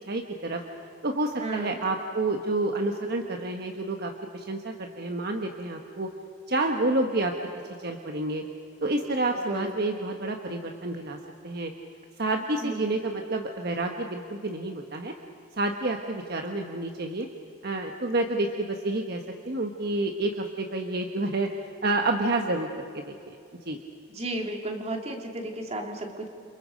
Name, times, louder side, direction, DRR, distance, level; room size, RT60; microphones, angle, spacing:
voice 1, 0.1-0.6 1.0-6.1 6.5-7.3 7.8-8.4 8.8-11.2 11.4-11.7 12.2-15.1 15.6-17.3 17.6-21.5 21.8-23.4 23.7-23.8, right 2 dB, 55° right, 3 dB, 1.3 m, -29 dB
voice 2, 1.4-1.8 9.5-9.8 12.6-13.0 24.1-26.3, right 1 dB, 35° right, 2 dB, 2.7 m, -34 dB
29.5 x 27.0 x 5.2 m, 2.5 s
head